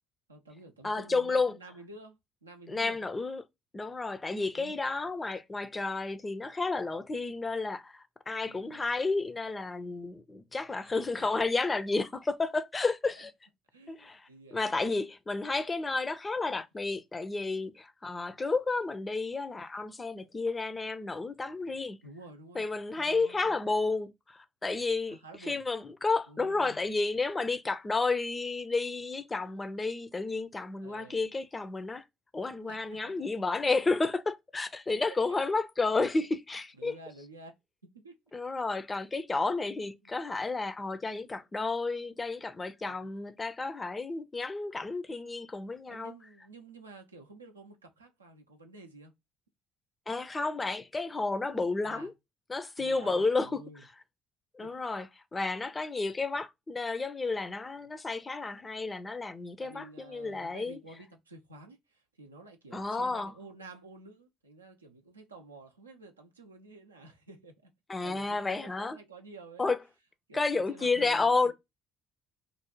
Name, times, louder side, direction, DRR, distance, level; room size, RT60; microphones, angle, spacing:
voice 1, 0.3-3.0 4.5-4.7 7.4-7.5 8.4-8.9 11.2-11.4 13.2-13.3 13.7-14.9 22.0-22.7 23.0-23.6 25.1-25.6 26.3-26.8 30.8-31.2 32.7-33.3 35.0-35.4 36.1-36.3 36.8-37.5 38.0-38.2 39.7-40.1 42.8-43.1 45.9-49.1 51.8-52.1 52.8-53.8 54.6-54.7 59.6-67.7 68.0-69.7 70.3-71.5, right 3 dB, 90° right, 0.4 m, -51 dB
voice 2, 0.8-1.6 2.7-3.4 3.7-13.3 13.9-22.0 22.6-32.0 32.3-37.0 38.3-46.1 50.1-52.1 52.5-53.6 54.5-60.8 62.7-63.3 67.9-69.0 69.6-69.8 70.3-71.5, left 3 dB, 25° left, 0.4 m, -31 dB
2.4 x 2.0 x 2.9 m
figure-of-eight pair, 55°, 0 cm